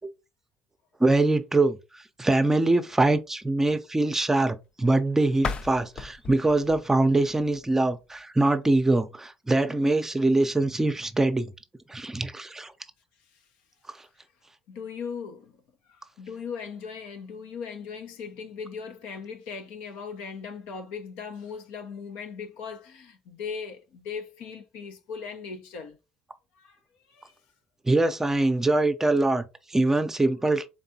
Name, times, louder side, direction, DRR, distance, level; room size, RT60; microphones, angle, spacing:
voice 1, 1.0-11.5 11.9-12.7 27.8-30.7, right 2 dB, 15° right, 0.6 m, -23 dB
sound 1, 5.3-8.2, left 5 dB, 40° left, 0.4 m, -37 dB
voice 2, 14.7-15.6 15.9-26.0 26.6-26.8 27.1-27.3, left 6 dB, 80° left, 0.9 m, -38 dB
4.0 x 3.5 x 2.8 m
supercardioid pair, 75°, 3 cm